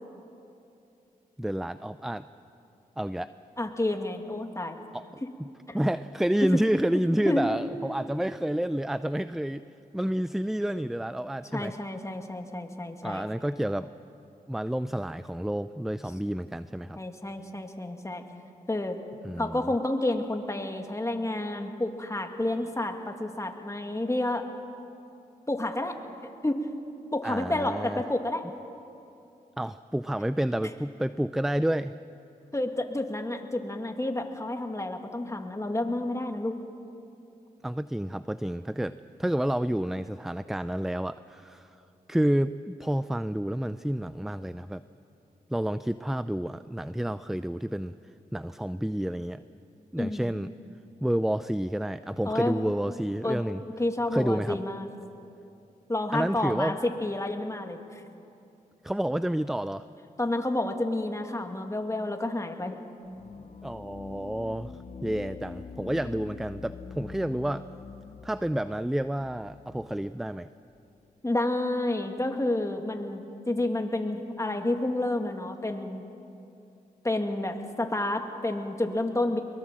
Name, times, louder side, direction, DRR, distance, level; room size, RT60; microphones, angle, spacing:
voice 1, 1.4-2.3 3.0-3.3 4.9-5.0 5.7-9.7 9.9-11.7 13.0-13.9 14.5-17.0 19.2-19.7 27.2-28.0 29.6-31.9 37.6-41.7 42.1-44.8 45.5-47.9 48.3-49.4 49.9-50.5 51.0-53.6 54.1-54.6 56.1-56.8 58.8-59.8 63.6-64.7 65.0-67.7 68.2-70.5, right 1 dB, ahead, 13 dB, 0.5 m, -29 dB
voice 2, 3.6-4.8 5.2-5.3 5.7-5.8 6.4-6.6 7.2-7.5 11.5-13.3 17.0-18.2 18.7-19.0 19.4-24.4 25.5-26.0 26.2-26.6 27.1-28.4 32.5-36.5 50.0-50.3 52.3-52.5 53.2-54.9 55.9-58.0 60.2-62.8 71.2-76.1 77.0-79.4, left 1 dB, 20° left, 4 dB, 2.4 m, -30 dB
sound 1, 63.0-70.2, left 5 dB, 45° left, 0.9 m, -44 dB
22.5 x 22.5 x 7.6 m, 2.7 s
cardioid pair, 55°, 15 cm